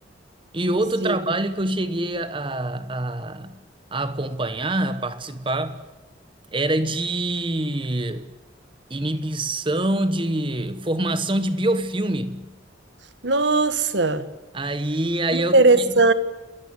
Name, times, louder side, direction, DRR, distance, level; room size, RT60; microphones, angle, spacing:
voice 1, 0.5-3.6 3.9-5.8 6.5-8.3 8.9-12.5 14.5-15.9, right 1 dB, 25° right, 1.1 m, -25 dB
voice 2, 13.2-14.2 15.3-16.1, right 3 dB, 70° right, 1.4 m, -18 dB
29.0 x 14.0 x 9.7 m
head